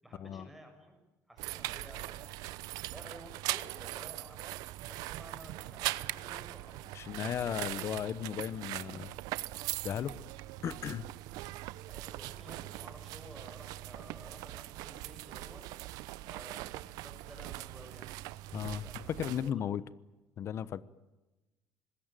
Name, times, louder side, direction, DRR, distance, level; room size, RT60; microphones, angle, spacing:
voice 1, 0.0-1.0 1.3-2.6 2.9-4.5 4.9-6.9 7.3-7.9 9.8-10.1 11.9-15.7 16.2-18.2 18.8-19.1 19.4-19.6, right 1 dB, 5° right, 4 dB, 7.0 m, -53 dB
sound 1, 1.4-19.5, right 17 dB, 90° right, 0.9 m, -41 dB
voice 2, 6.9-9.1 9.8-10.1 10.6-11.1 18.5-19.8 20.4-20.8, left 9 dB, 45° left, 18 dB, 1.0 m, -35 dB
26.0 x 21.0 x 9.2 m, 1.1 s
cardioid pair, 140°, 6 cm